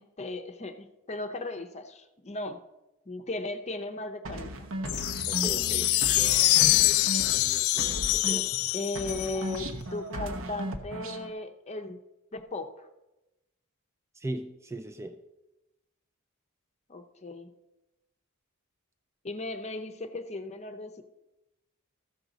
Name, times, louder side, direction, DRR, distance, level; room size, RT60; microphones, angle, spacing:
voice 1, 0.0-2.6 3.1-4.7 8.7-12.0 12.3-12.9 16.9-17.5 19.2-21.0, left 2 dB, 30° left, 7 dB, 0.7 m, -36 dB
sound 1, 4.2-8.7 8.9-11.3, right 1 dB, 65° right, 0.9 m, -36 dB
sound 2, 4.9-9.6, left 17 dB, 70° left, 0.3 m, -25 dB
voice 2, 5.3-5.9 8.1-8.5 14.1-15.2, right 1 dB, 15° right, 7 dB, 0.4 m, -38 dB
14.5 x 6.1 x 4.0 m, 0.99 s
head